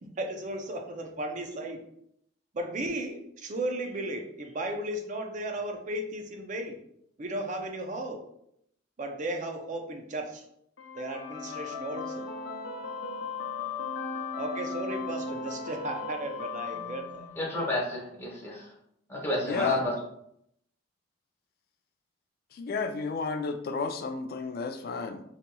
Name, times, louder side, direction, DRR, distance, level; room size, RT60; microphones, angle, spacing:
voice 1, 0.0-1.8 2.5-6.8 7.2-8.2 9.0-10.4 10.9-12.3 14.4-17.3, right 1 dB, 40° right, 4 dB, 0.5 m, -35 dB
sound 1, 10.8-17.7, left 4 dB, 85° left, 0.7 m, -37 dB
voice 2, 17.4-18.7 19.1-19.9, left 2 dB, 15° left, -4 dB, 1.1 m, -30 dB
voice 3, 19.4-19.8 22.5-25.2, left 4 dB, 55° left, 8 dB, 0.4 m, -32 dB
4.0 x 2.9 x 2.2 m, 0.73 s
head